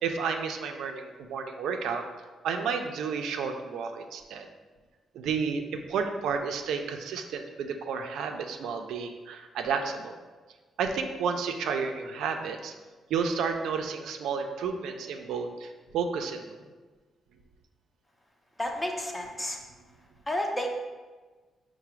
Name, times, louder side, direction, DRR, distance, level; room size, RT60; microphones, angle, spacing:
voice 1, 0.0-2.1 2.4-4.5 5.1-10.2 10.8-12.7 13.1-16.6, right 5 dB, 85° right, 5 dB, 0.3 m, -31 dB
voice 2, 18.6-19.6 20.3-20.7, left 1 dB, 10° left, 2 dB, 0.5 m, -31 dB
4.8 x 2.0 x 4.4 m, 1.3 s
cardioid pair, 110°, 0 cm